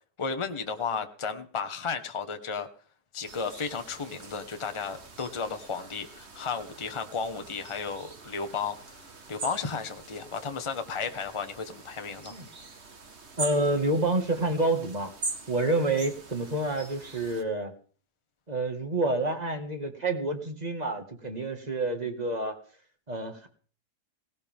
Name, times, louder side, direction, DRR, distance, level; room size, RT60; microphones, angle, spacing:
voice 1, 0.2-2.7 3.1-9.0 9.3-12.4, left 5 dB, 20° left, 7 dB, 1.1 m, -33 dB
sound 1, 3.2-17.4, right 3 dB, 40° right, 1.8 m, -43 dB
voice 2, 13.4-15.1 15.5-17.7 18.5-22.6 23.1-23.5, right 2 dB, 25° right, 6 dB, 2.0 m, -28 dB
18.0 x 16.0 x 3.6 m, 0.43 s
omnidirectional pair, 1.7 m